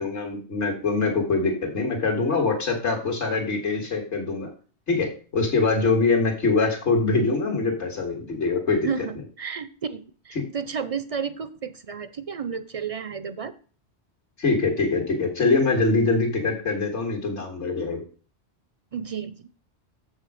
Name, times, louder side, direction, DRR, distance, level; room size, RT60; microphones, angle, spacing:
voice 1, 0.0-4.5 4.9-8.9 10.4-10.5 14.4-18.0, left 3 dB, 85° left, 1 dB, 2.3 m, -23 dB
voice 2, 8.8-13.5 18.9-19.5, right 6 dB, 55° right, 13 dB, 0.4 m, -32 dB
7.4 x 6.3 x 4.9 m, 0.39 s
omnidirectional pair, 1.2 m